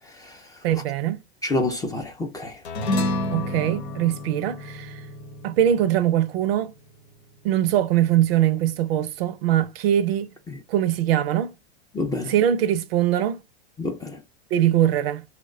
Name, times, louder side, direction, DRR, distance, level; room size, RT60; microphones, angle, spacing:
voice 1, 0.6-1.2 3.3-5.0 5.4-6.7 7.4-10.3 10.7-11.5 12.3-13.4 14.5-15.2, right 11 dB, 65° right, 0.5 m, -22 dB
voice 2, 1.4-2.6 10.5-10.6 11.9-12.3 13.8-14.2, left 2 dB, 10° left, 0.4 m, -28 dB
sound 1, 2.6-7.3, left 1 dB, 85° left, 0.9 m, -30 dB
3.0 x 2.2 x 3.6 m
hypercardioid pair, 105°, 32 cm